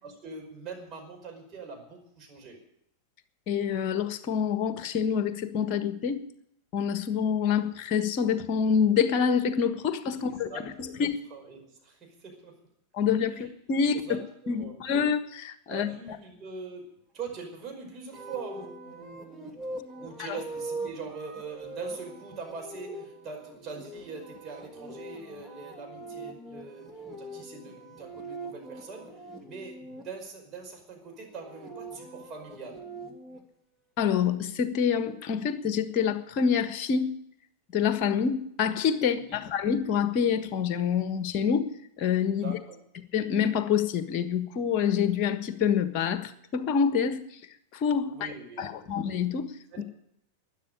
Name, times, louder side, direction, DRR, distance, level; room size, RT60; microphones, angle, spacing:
voice 1, 0.0-2.6 10.1-12.6 13.3-13.5 13.8-14.8 15.7-19.6 20.0-32.8 39.1-39.5 42.4-42.8 48.1-48.9 49.7-49.8, right 4 dB, 30° right, 2 dB, 5.3 m, -43 dB
voice 2, 3.5-6.2 6.7-10.5 10.8-11.2 12.9-16.2 34.0-37.1 37.7-41.7 42.0-42.5 43.1-47.2 47.7-48.3 48.6-49.8, left 7 dB, 40° left, 11 dB, 1.5 m, -27 dB
sound 1, 18.1-30.0 31.2-33.4, right 2 dB, 15° right, 2.6 m, -42 dB
12.5 x 10.5 x 9.9 m, 0.73 s
figure-of-eight pair, 90°, 0 cm